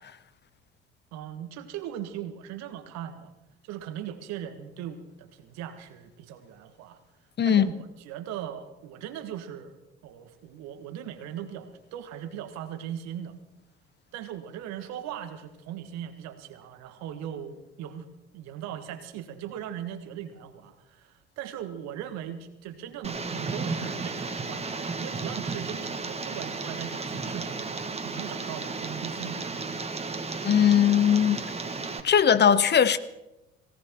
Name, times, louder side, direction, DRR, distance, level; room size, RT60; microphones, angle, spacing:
voice 1, 1.1-3.3 3.6-7.0 7.4-9.8 10.0-13.4 14.1-18.1 18.3-27.8 28.0-29.7, right 10 dB, 60° right, 1.8 m, -39 dB
Tick, 23.0-32.0, right 4 dB, 20° right, 1.8 m, -34 dB
voice 2, 30.4-31.4 32.0-33.0, left 8 dB, 35° left, 1.1 m, -19 dB
18.5 x 17.5 x 4.4 m
hypercardioid pair, 60°, 30 cm